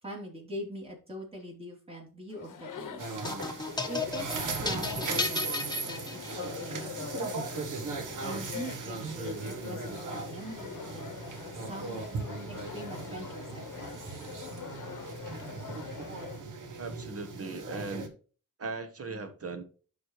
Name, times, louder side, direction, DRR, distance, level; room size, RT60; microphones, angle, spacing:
voice 1, 0.0-3.1 3.9-7.3 8.2-11.2 11.5-12.1 12.5-14.0, right 1 dB, 20° right, 3.3 m, -43 dB
Chatter, 2.3-16.4, left 7 dB, 75° left, 0.9 m, -44 dB
sound 1, 3.0-18.1, right 4 dB, 75° right, 1.3 m, -38 dB
sound 2, 3.2-6.6, left 3 dB, 15° left, 1.1 m, -34 dB
voice 2, 16.8-18.1 18.6-19.6, right 3 dB, 50° right, 1.3 m, -38 dB
11.5 x 4.2 x 3.2 m
cardioid pair, 70°, 31 cm